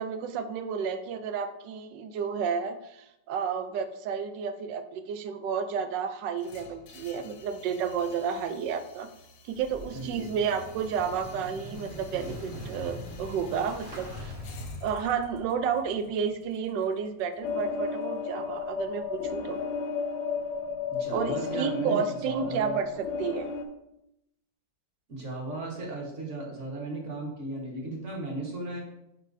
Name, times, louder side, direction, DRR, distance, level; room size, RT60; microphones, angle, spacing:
voice 1, 0.0-9.1 9.4-14.3 14.8-19.6 21.1-23.5, right 7 dB, 75° right, 9 dB, 1.3 m, -31 dB
sound 1, 6.4-18.4, left 3 dB, 65° left, 1.2 m, -52 dB
Motorcycle / Engine starting, 9.5-15.4, equal, 15° right, 1.0 m, -42 dB
voice 2, 9.9-10.3 20.9-22.8 25.1-28.8, right 2 dB, 45° right, -2 dB, 1.6 m, -36 dB
sound 2, 17.4-23.6, left 5 dB, 85° left, 1.4 m, -33 dB
9.9 x 4.4 x 2.6 m, 0.86 s
omnidirectional pair, 2.0 m